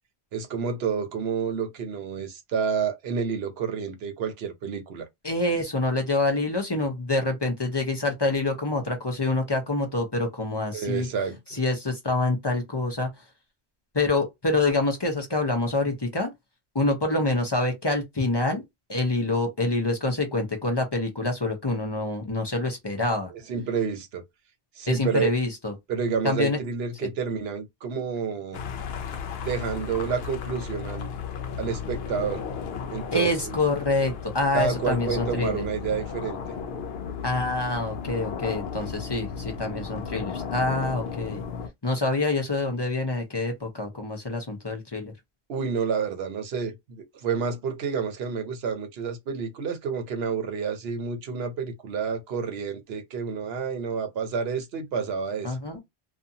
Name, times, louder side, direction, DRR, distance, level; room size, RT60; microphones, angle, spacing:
voice 1, 0.3-5.1 10.7-11.6 23.3-24.2 24.8-25.3 25.9-28.6 29.4-31.1 31.6-32.4 32.9-33.6 34.5-36.4 45.5-55.6, right 6 dB, 65° right, 0.9 m, -29 dB
voice 2, 5.2-11.1 11.5-13.1 13.9-16.3 16.7-18.6 18.9-23.3 24.9-25.7 26.2-26.6 33.1-35.7 37.2-41.4 41.8-45.1 55.4-55.8, left 2 dB, 30° left, 0.6 m, -26 dB
sound 1, 28.5-41.7, left 6 dB, 70° left, 0.8 m, -34 dB
2.6 x 2.3 x 2.7 m
omnidirectional pair, 1.2 m